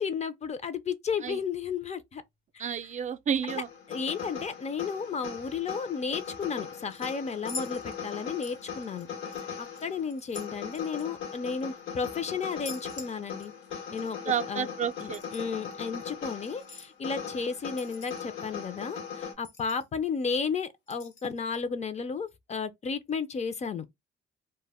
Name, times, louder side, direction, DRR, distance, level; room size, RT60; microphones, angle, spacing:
voice 1, 0.0-2.2 2.5-2.6 3.9-9.1 9.6-13.5 13.9-14.7 15.0-23.9, left 5 dB, 35° left, 0.4 m, -33 dB
voice 2, 2.6-3.7 14.3-15.2, right 8 dB, 40° right, 0.4 m, -30 dB
sound 1, 3.5-19.3, left 7 dB, 90° left, 1.0 m, -40 dB
sound 2, 6.2-6.5 6.9-8.2 8.4-9.4 9.7-11.8 12.5-13.7 14.0-14.1 14.9-15.5 16.4-16.9 17.7-18.4 18.8-18.9 19.1-19.2 19.4-20.1 20.9-21.6 22.3-22.4, left 3 dB, 65° left, 0.8 m, -45 dB
2.1 x 2.0 x 3.3 m
cardioid pair, 90°, 20 cm